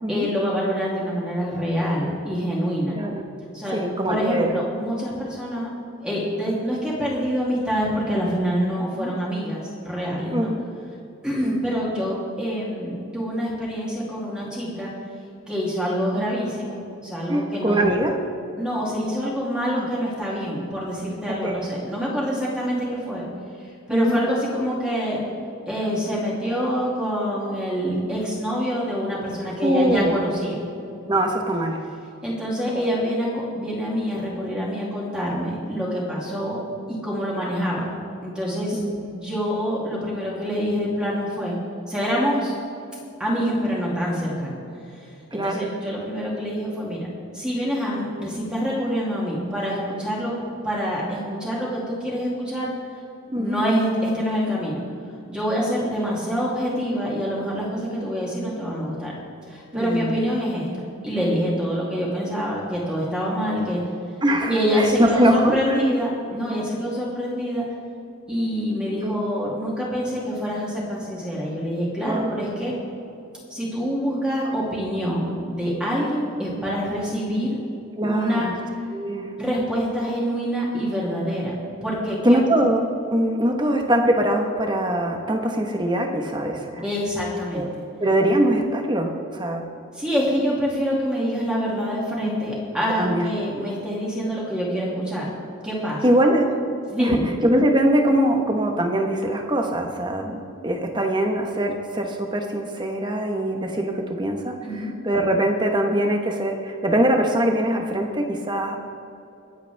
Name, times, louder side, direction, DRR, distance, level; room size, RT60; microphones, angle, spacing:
voice 1, 0.1-3.0 3.5-5.7 6.0-10.5 11.2-14.9 15.5-17.8 18.6-23.3 23.9-25.2 25.7-30.6 32.2-36.6 36.9-37.8 38.2-41.6 41.9-42.5 43.2-44.6 45.3-47.0 47.3-50.3 50.6-52.7 53.3-54.8 55.3-59.1 59.5-63.8 64.5-67.7 68.3-72.7 73.5-77.6 78.0-78.5 79.4-81.5 81.8-82.4 86.8-87.7 89.9-95.3 95.6-96.0 96.9-97.2 104.6-104.9, equal, 5° right, -6 dB, 2.5 m, -26 dB
voice 2, 2.9-3.2 3.7-4.6 9.0-9.1 10.3-10.6 11.4-11.6 16.1-16.3 17.3-18.1 19.7-19.9 21.4-21.6 23.9-24.2 29.6-30.1 31.1-31.8 38.7-39.1 45.3-45.7 53.3-53.6 59.7-60.2 64.2-65.6 69.0-69.3 72.1-72.3 78.0-78.5 78.9-79.3 82.2-82.8 83.1-86.8 87.5-87.7 88.0-89.6 93.0-93.3 96.0-96.6 97.0-97.2 97.4-108.8, right 1 dB, 20° right, 3 dB, 1.2 m, -22 dB
25.0 x 8.3 x 3.5 m, 2.7 s
head